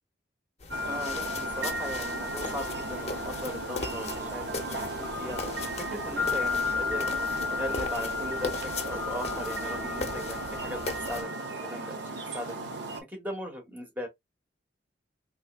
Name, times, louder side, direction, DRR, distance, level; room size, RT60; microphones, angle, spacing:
sound 1, 0.6-11.2, left 3 dB, 35° left, 0.6 m, -39 dB
sound 2, 0.7-13.0, left 1 dB, 75° right, 0.8 m, -33 dB
voice 1, 0.9-5.4 5.8-10.8 11.1-12.5 13.1-14.1, equal, 10° right, 1.0 m, -38 dB
sound 3, 2.4-10.4, left 1 dB, 40° right, 2.6 m, -48 dB
3.5 x 3.0 x 2.3 m
head